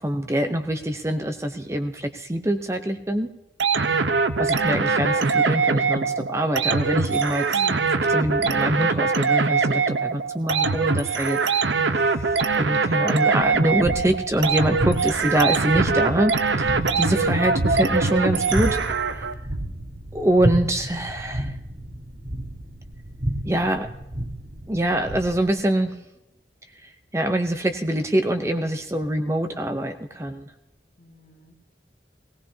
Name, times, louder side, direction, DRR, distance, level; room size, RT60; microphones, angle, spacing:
voice 1, 0.0-3.3 4.4-7.6 8.1-11.4 11.9-19.3 20.1-21.6 23.4-23.9 24.7-26.0 26.8-30.5, right 1 dB, 15° right, 7 dB, 0.6 m, -25 dB
sound 1, 3.6-19.3, right 4 dB, 85° right, 0.9 m, -22 dB
voice 2, 7.5-7.9 15.1-15.2 31.0-31.5, left 1 dB, 55° left, 1 dB, 2.1 m, -42 dB
sound 2, 13.4-25.5, right 1 dB, 40° right, 1.4 m, -31 dB
18.5 x 18.0 x 2.8 m, 0.92 s
head